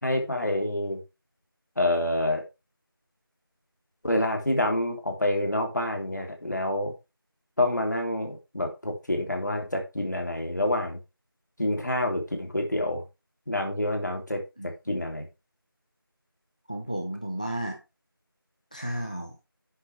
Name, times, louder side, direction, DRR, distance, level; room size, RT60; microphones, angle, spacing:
voice 1, 0.0-1.0 1.8-2.4 4.0-6.9 7.6-11.0 11.6-13.0 13.5-14.4 14.9-15.3, left 1 dB, 50° left, 3 dB, 3.1 m, -27 dB
voice 2, 14.6-15.0 16.7-17.8 18.7-19.3, right 1 dB, 20° left, 3 dB, 0.8 m, -33 dB
11.5 x 8.0 x 3.4 m, 0.26 s
figure-of-eight pair, 180°, 13 cm